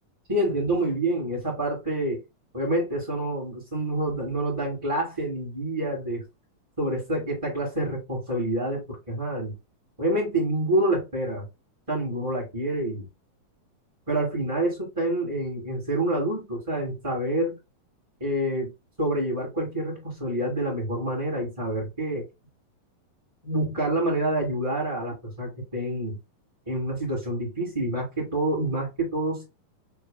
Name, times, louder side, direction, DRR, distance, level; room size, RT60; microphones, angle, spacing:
voice 1, 0.3-2.2 2.5-6.2 6.8-9.5 10.0-11.5 11.9-13.1 14.1-17.6 18.2-18.7 19.0-22.2 23.4-26.2 26.7-29.4, right 1 dB, 10° right, 1.8 m, -27 dB
6.9 x 3.2 x 2.3 m
omnidirectional pair, 4.1 m